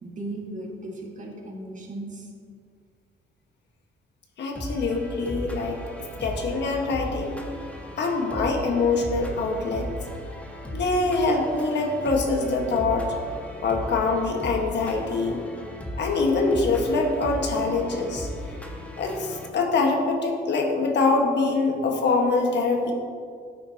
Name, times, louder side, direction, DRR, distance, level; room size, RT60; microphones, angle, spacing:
voice 1, 0.0-2.3, right 1 dB, 40° right, 0 dB, 1.9 m, -36 dB
voice 2, 4.4-5.8 6.2-7.4 8.0-9.9 10.7-13.1 13.6-15.4 16.0-18.3 19.0-22.9, left 3 dB, 60° left, 1 dB, 1.6 m, -24 dB
sound 1, 4.5-19.5, equal, 5° left, 1.5 m, -36 dB
12.0 x 9.1 x 3.0 m, 2.2 s
cardioid pair, 90°, 20 cm